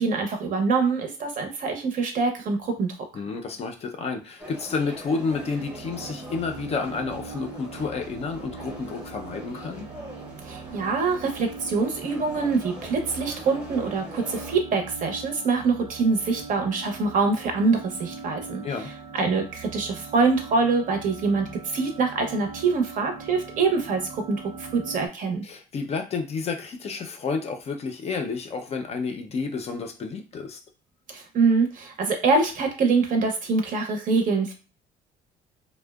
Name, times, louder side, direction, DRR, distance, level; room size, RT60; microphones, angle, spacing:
voice 1, 0.0-2.9 10.5-25.4 31.1-34.5, right 4 dB, 50° right, 4 dB, 0.7 m, -24 dB
voice 2, 3.1-9.9 18.6-18.9 25.4-30.6, left 4 dB, 40° left, 4 dB, 0.4 m, -30 dB
sound 1, 4.4-14.6, equal, 5° right, 0.7 m, -43 dB
sound 2, 5.3-25.1, right 5 dB, 90° right, 0.6 m, -41 dB
2.6 x 2.0 x 2.3 m, 0.34 s
cardioid pair, 110°, 17 cm